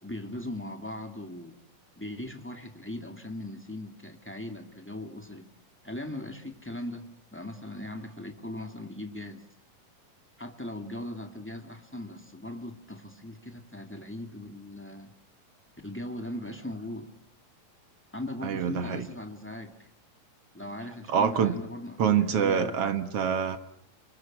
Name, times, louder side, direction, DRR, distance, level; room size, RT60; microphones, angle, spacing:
voice 1, 0.0-1.6 1.9-5.5 5.8-9.4 10.4-15.1 15.8-17.1 18.1-19.7 20.5-22.8, left 1 dB, 5° left, 1.3 m, -39 dB
voice 2, 18.4-19.1 21.1-21.6 22.0-23.6, right 7 dB, 55° right, 2.0 m, -25 dB
27.5 x 23.5 x 8.7 m
omnidirectional pair, 4.0 m